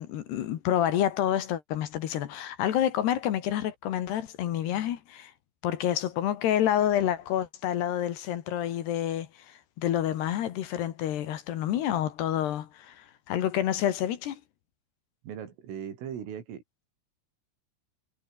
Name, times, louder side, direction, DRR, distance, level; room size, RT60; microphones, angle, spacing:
voice 1, 0.0-5.3 5.6-14.4, left 11 dB, 65° left, 3.4 m, -28 dB
voice 2, 15.2-16.6, right 8 dB, 85° right, 6.2 m, -38 dB
omnidirectional pair, 5.6 m